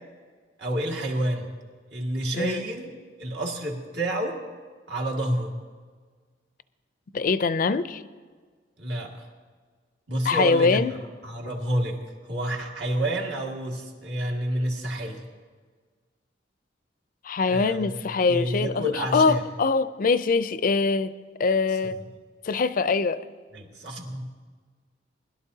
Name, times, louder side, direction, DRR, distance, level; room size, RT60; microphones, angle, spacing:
voice 1, 0.6-1.5 1.9-2.9 3.2-4.4 4.9-5.5 8.8-9.1 10.1-10.9 11.2-15.2 17.5-17.9 18.3-19.4 23.5-24.2, right 1 dB, 70° right, -1 dB, 2.0 m, -29 dB
voice 2, 7.1-8.0 10.3-11.0 17.2-21.1 21.4-22.0 22.4-23.2, left 4 dB, 50° left, 14 dB, 0.4 m, -23 dB
21.0 x 12.0 x 2.8 m, 1.5 s
head